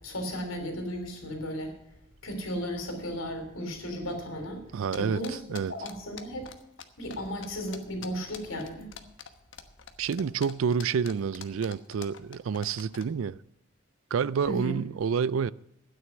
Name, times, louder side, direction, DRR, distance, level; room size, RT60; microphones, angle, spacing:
voice 1, 0.0-1.7 2.2-4.6 5.0-5.4 5.7-6.5 7.0-8.9 14.5-14.7, equal, 90° left, 3.5 m, -35 dB
voice 2, 4.7-5.7 10.0-13.4 14.1-15.5, right 6 dB, 80° right, 0.4 m, -28 dB
sound 1, 4.9-6.8 7.1-7.2 7.4-13.1, left 8 dB, 65° left, 1.2 m, -44 dB
12.5 x 9.6 x 6.2 m
head